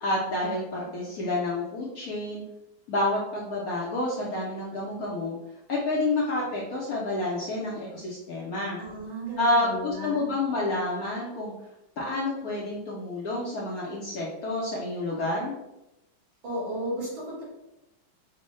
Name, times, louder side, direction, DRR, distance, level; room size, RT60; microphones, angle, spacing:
voice 1, 0.0-2.4 2.9-5.4 5.7-8.8 9.4-11.5 12.0-15.5, left 2 dB, 65° left, -4 dB, 0.9 m, -29 dB
voice 2, 8.8-10.3 16.4-17.4, right 1 dB, 70° right, -7 dB, 2.4 m, -34 dB
4.4 x 2.1 x 3.1 m, 0.92 s
omnidirectional pair, 2.1 m